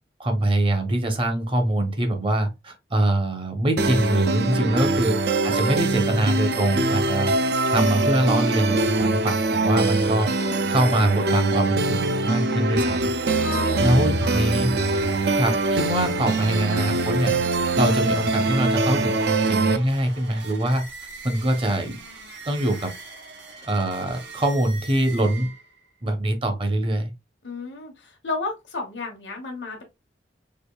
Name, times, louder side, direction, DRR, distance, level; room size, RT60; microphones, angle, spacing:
voice 1, 0.2-5.2 5.4-7.3 7.7-13.1 13.8-14.8 15.3-17.4 17.8-20.8 21.2-22.0 22.5-22.9 23.6-25.5 26.0-27.1, right 1 dB, 30° right, 0.8 m, -23 dB
sound 1, 3.8-19.8, right 2 dB, 60° right, 0.5 m, -23 dB
voice 2, 4.5-5.0 6.6-7.0 13.3-14.5 27.4-29.8, left 3 dB, 85° left, 1.0 m, -33 dB
sound 2, 14.8-25.9, right 5 dB, 85° right, 1.1 m, -41 dB
5.0 x 2.5 x 2.3 m
head